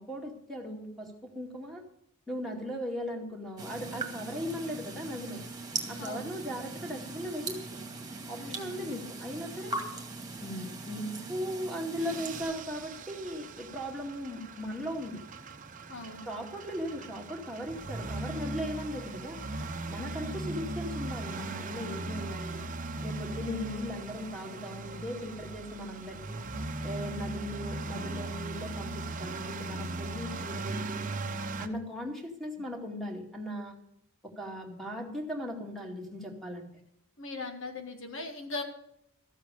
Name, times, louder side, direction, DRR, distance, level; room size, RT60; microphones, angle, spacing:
voice 1, 0.0-1.8 2.3-5.4 5.9-7.8 8.3-9.8 10.4-15.2 16.2-19.4 19.9-22.6 23.0-26.4 26.8-31.0 31.6-33.8 34.2-36.7, equal, ahead, 1 dB, 2.3 m, -38 dB
sound 1, 3.6-12.4, right 3 dB, 20° right, 2.1 m, -40 dB
voice 2, 8.4-9.0 15.9-16.2 20.0-20.6 37.2-38.6, left 3 dB, 60° left, 5 dB, 1.7 m, -40 dB
sound 2, 12.0-31.7, right 2 dB, 40° right, 0.9 m, -38 dB
14.0 x 7.9 x 6.8 m, 0.76 s
head